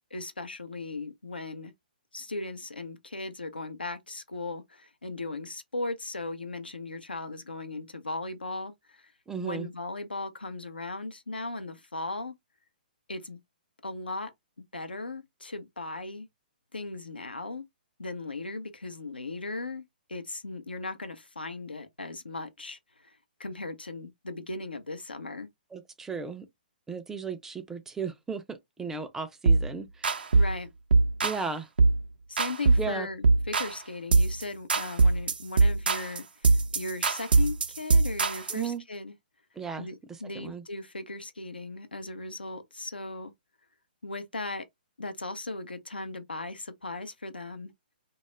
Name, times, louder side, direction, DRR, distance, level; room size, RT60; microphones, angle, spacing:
voice 1, 0.1-1.7 2.1-9.1 9.4-12.3 13.1-13.4 13.8-14.3 14.6-16.3 16.7-17.7 18.0-25.5 30.3-30.7 32.3-39.1 39.8-43.3 44.0-44.6 45.0-47.7, left 2 dB, 85° left, 0.6 m, -37 dB
voice 2, 9.3-9.7 25.7-26.5 26.9-30.3 31.2-31.7 32.8-33.1 38.5-38.8 39.6-40.6, right 5 dB, 10° right, 0.3 m, -36 dB
sound 1, 29.5-29.7 30.0-30.6 30.9-31.4 31.8-32.0 32.4-32.9 33.2-33.8 34.1-34.4 34.7-38.6, right 3 dB, 70° right, 0.5 m, -22 dB
2.2 x 2.0 x 3.0 m
figure-of-eight pair, 125°, 5 cm